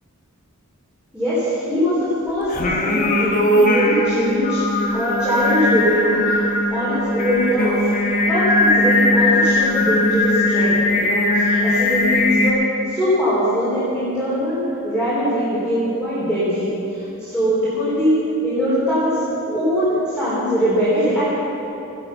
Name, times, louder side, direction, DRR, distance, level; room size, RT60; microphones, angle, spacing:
voice 1, 1.1-6.4 6.7-19.2 19.5-21.3, equal, 5° right, -12 dB, 4.0 m, -22 dB
Singing, 2.5-12.5, left 1 dB, 40° left, 1.5 m, -19 dB
15.0 x 11.5 x 5.6 m, 2.9 s
head